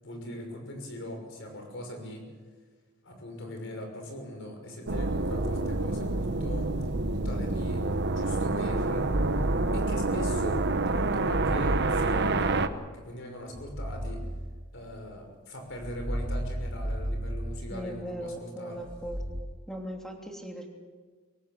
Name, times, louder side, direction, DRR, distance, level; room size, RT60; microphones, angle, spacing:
voice 1, 0.0-2.3 3.0-6.8 7.0-9.1 9.7-12.7 12.9-14.3 14.7-18.8, left 1 dB, 60° left, 4 dB, 5.9 m, -40 dB
sound 1, 4.9-12.7, right 2 dB, 55° right, 1.1 m, -28 dB
sound 2, 6.6-8.2 8.8-10.6 11.1-12.7 13.5-15.1 15.7-18.2 18.8-19.4, equal, 20° right, 1.8 m, -35 dB
voice 2, 17.7-19.2 19.7-20.7, equal, ahead, 1 dB, 3.0 m, -38 dB
24.5 x 18.0 x 7.8 m, 1.5 s
head